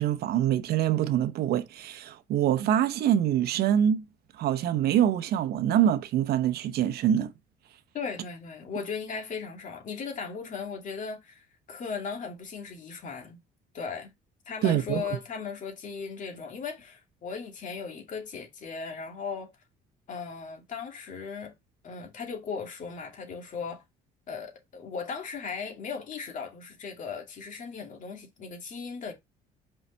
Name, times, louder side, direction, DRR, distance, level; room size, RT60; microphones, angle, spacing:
voice 1, 0.0-4.0 4.4-7.3 14.6-15.0, right 10 dB, 70° right, 0.8 m, -25 dB
voice 2, 7.9-13.4 13.7-14.1 14.5-19.5 20.1-21.5 21.8-23.8 24.3-29.1, left 5 dB, 50° left, 2.5 m, -37 dB
5.6 x 5.6 x 3.3 m
cardioid pair, 110°, 17 cm